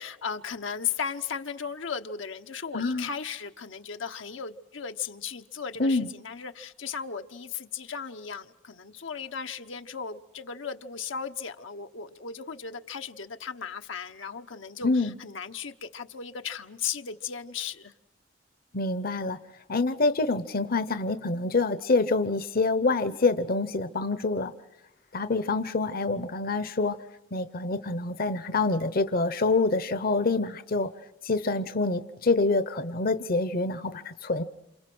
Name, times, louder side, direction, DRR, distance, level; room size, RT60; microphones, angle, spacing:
voice 1, 0.0-17.9, left 6 dB, 80° left, 1.0 m, -36 dB
voice 2, 2.7-3.1 5.8-6.1 14.8-15.1 18.7-19.4 19.7-24.5 25.1-27.0 27.3-30.9 31.2-34.4, left 3 dB, 50° left, 0.9 m, -26 dB
28.5 x 28.0 x 6.2 m
head